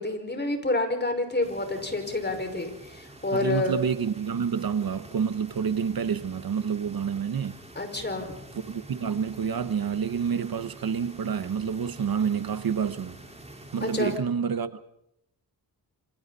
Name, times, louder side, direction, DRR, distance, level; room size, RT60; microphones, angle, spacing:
voice 1, 0.0-3.8 7.8-8.3 13.8-14.1, left 2 dB, 25° left, 5.7 m, -28 dB
sound 1, 1.4-14.2, right 1 dB, 15° right, 4.6 m, -47 dB
voice 2, 3.3-7.6 8.6-13.2 13.7-14.9, right 7 dB, 55° right, 1.3 m, -28 dB
28.5 x 26.0 x 4.2 m
wide cardioid pair, 100°, 41 cm